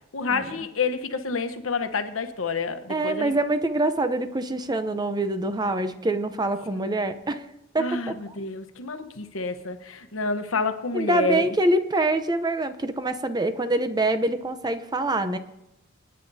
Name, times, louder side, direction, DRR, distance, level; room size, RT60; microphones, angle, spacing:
voice 1, 0.1-3.4 7.8-11.5, left 3 dB, 80° left, 8 dB, 1.0 m, -28 dB
voice 2, 2.9-7.5 7.7-8.3 10.9-15.4, right 2 dB, 20° right, 10 dB, 0.7 m, -25 dB
26.5 x 9.8 x 2.7 m, 0.87 s
head